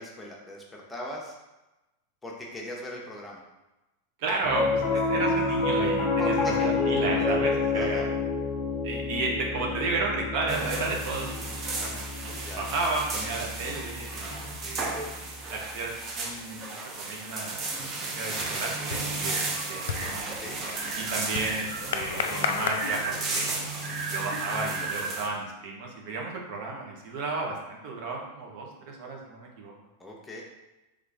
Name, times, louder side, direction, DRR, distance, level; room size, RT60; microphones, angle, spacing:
voice 1, 0.0-1.3 2.2-3.4 6.2-6.7 7.7-8.1 12.4-12.6 20.2-20.6 30.0-30.4, left 1 dB, 10° left, -2 dB, 1.0 m, -39 dB
voice 2, 4.2-8.1 8.8-12.0 12.5-14.3 14.6-14.9 15.5-17.7 18.0-19.4 19.7-20.0 21.0-29.7, right 3 dB, 60° right, -1 dB, 1.0 m, -33 dB
Piano, 4.4-14.9, left 3 dB, 35° left, 1.4 m, -29 dB
sound 1, 10.5-25.3, right 3 dB, 35° right, 0.8 m, -34 dB
sound 2, 17.4-17.6 18.0-23.8, left 6 dB, 80° left, 0.4 m, -35 dB
3.7 x 3.4 x 3.5 m, 1.0 s
hypercardioid pair, 110°, 0 cm